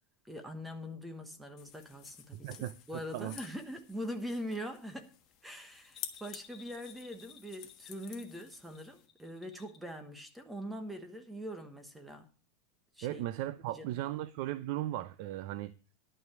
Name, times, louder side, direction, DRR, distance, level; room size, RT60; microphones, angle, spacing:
voice 1, 0.2-5.1 5.4-12.3 12.9-14.0, equal, 5° right, 1.1 m, -43 dB
sound 1, 1.6-9.1, left 11 dB, 35° left, 1.4 m, -51 dB
voice 2, 2.3-3.4 13.0-15.7, right 14 dB, 50° right, 0.6 m, -37 dB
Bell, 5.8-10.0 10.2-10.3, left 7 dB, 20° left, 2.2 m, -58 dB
11.0 x 6.0 x 7.7 m
supercardioid pair, 160°, 0 cm